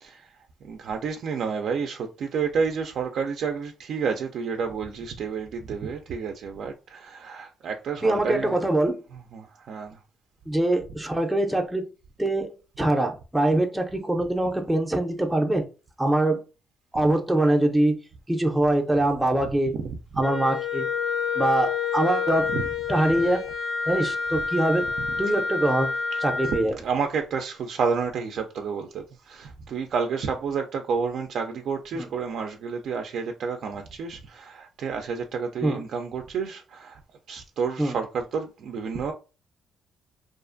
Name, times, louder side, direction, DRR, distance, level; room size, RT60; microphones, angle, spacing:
voice 1, 0.0-0.3 0.6-8.6 9.1-10.0 18.9-19.0 19.8-20.2 22.5-22.7 24.3-24.4 25.0-25.4 26.1-37.0 37.3-39.1, right 5 dB, 70° right, 0.3 m, -30 dB
voice 2, 8.0-9.0 10.5-11.8 12.2-15.7 16.0-16.4 16.9-18.0 18.3-19.7 20.2-20.9 21.3-22.5 22.9-23.4 23.9-25.9 26.2-26.8 31.9-32.1 35.6-35.8 37.8-38.0, right 1 dB, 5° right, 0.4 m, -23 dB
Wind instrument woodwind instrument, 20.2-26.7, left 5 dB, 55° left, 0.6 m, -28 dB
2.4 x 2.3 x 2.4 m
cardioid pair, 90°, 0 cm